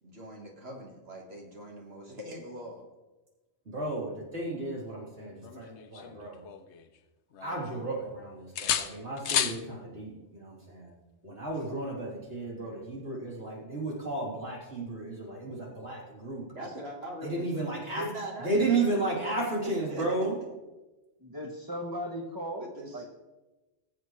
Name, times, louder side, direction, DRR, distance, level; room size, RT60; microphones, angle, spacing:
voice 1, 0.0-2.8 11.5-11.7 16.6-20.2 22.6-23.1, right 1 dB, 65° right, -1 dB, 1.9 m, -41 dB
voice 2, 3.7-6.4 7.4-10.9 11.2-16.5 17.2-18.0 18.4-20.3, right 2 dB, 85° right, -5 dB, 3.9 m, -33 dB
sound 1, 5.4-7.0 7.3-8.1 8.6-9.6 11.5-11.7, left 9 dB, 85° left, 1.0 m, -33 dB
voice 3, 21.2-23.0, equal, 20° right, -1 dB, 1.2 m, -37 dB
20.5 x 7.9 x 3.2 m, 1.1 s
omnidirectional pair, 1.1 m